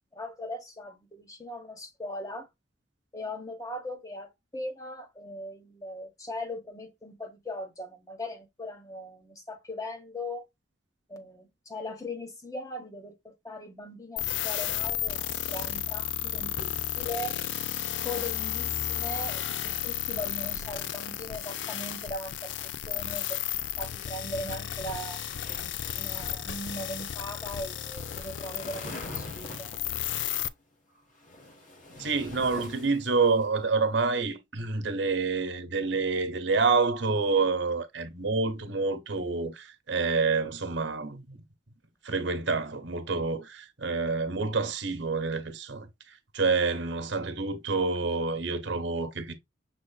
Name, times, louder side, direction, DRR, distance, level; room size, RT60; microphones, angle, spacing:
voice 1, 0.1-2.5 3.1-10.5 11.1-17.4 18.0-25.2 25.9-29.9, left 1 dB, 15° left, 1.1 m, -39 dB
sound 1, 14.2-30.5, left 10 dB, 75° left, 0.5 m, -33 dB
sound 2, 25.3-30.0 31.0-33.5, left 1 dB, 45° left, 1.5 m, -45 dB
voice 2, 32.0-41.4 42.0-45.9 46.3-49.3, right 4 dB, 70° right, 1.1 m, -28 dB
6.2 x 3.8 x 2.2 m
head